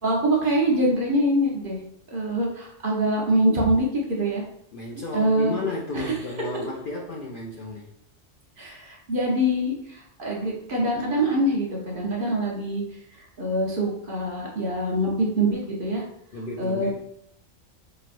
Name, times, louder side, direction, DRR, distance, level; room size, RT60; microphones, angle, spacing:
voice 1, 0.0-1.8 2.1-4.4 5.1-5.5 5.9-6.1 8.6-12.8 13.4-16.0 16.6-16.9, right 1 dB, 45° right, -3 dB, 1.0 m, -24 dB
voice 2, 4.7-7.9 16.3-16.9, left 2 dB, 60° left, -2 dB, 0.6 m, -33 dB
5.0 x 3.0 x 2.5 m, 0.71 s
omnidirectional pair, 1.3 m